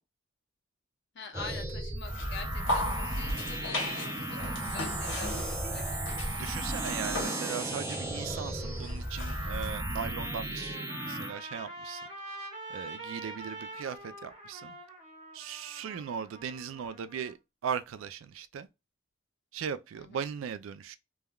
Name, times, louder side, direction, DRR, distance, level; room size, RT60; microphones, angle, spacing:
voice 1, 1.1-6.5 19.9-20.3, left 4 dB, 60° left, 0.6 m, -45 dB
sound 1, 1.3-11.3, right 1 dB, 15° right, 0.4 m, -35 dB
sound 2, 2.1-9.7, left 1 dB, 80° left, 1.1 m, -37 dB
voice 2, 6.4-12.0 12.7-14.8 15.3-18.7 19.5-21.0, right 7 dB, 90° right, 0.3 m, -38 dB
Trumpet, 9.9-17.3, right 1 dB, 30° right, 1.2 m, -45 dB
3.3 x 2.2 x 2.3 m
head